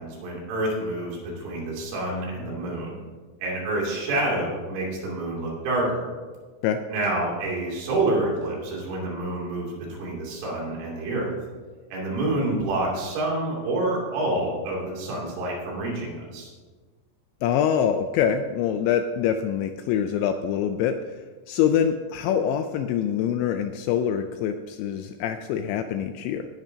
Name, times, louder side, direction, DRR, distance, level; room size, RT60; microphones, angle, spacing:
voice 1, 0.0-3.0 3.4-6.1 6.9-11.3 11.9-16.5, right 2 dB, 75° right, -3 dB, 5.2 m, -28 dB
voice 2, 17.4-26.5, left 8 dB, 85° left, 8 dB, 2.6 m, -25 dB
18.0 x 10.5 x 2.8 m, 1.4 s
omnidirectional pair, 5.6 m